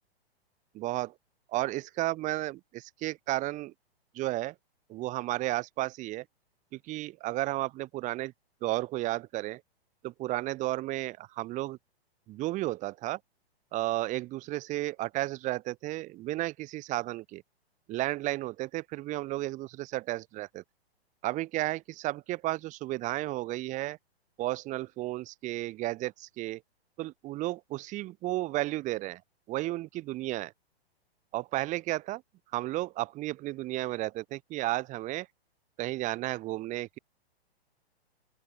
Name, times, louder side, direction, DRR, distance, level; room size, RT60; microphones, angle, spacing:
voice 1, 0.7-1.1 1.5-3.7 4.1-4.5 4.9-6.2 6.7-8.3 8.6-9.6 10.0-11.8 12.3-13.2 13.7-17.4 17.9-20.6 21.2-24.0 24.4-26.6 27.0-29.2 29.5-30.5 31.3-32.2 32.5-35.3 35.8-37.0, right 17 dB, 25° right, 1.2 m, -33 dB
open air
hypercardioid pair, 140°, 31 cm